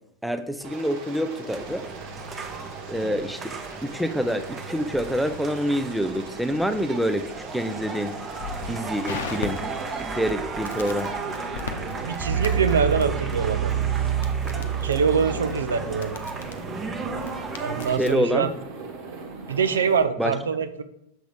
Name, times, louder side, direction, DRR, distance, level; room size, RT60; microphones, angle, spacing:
voice 1, 0.2-1.9 2.9-8.1 8.6-9.6 10.0-11.1 17.9-18.5 20.2-20.3, equal, ahead, 9 dB, 0.4 m, -27 dB
Aircraft, 0.6-12.1 12.4-14.2 14.4-16.0 16.3-18.1 18.4-20.0, right 4 dB, 50° right, 1.5 m, -40 dB
sound 1, 1.5-18.0, right 6 dB, 20° right, 0.9 m, -31 dB
Crackle, 8.4-18.3, left 5 dB, 60° left, 0.7 m, -40 dB
voice 2, 12.0-13.7 14.5-16.2 17.6-18.5 19.5-20.8, right 6 dB, 65° right, 9 dB, 0.5 m, -24 dB
6.8 x 3.8 x 4.9 m, 0.77 s
figure-of-eight pair, 90°, 0 cm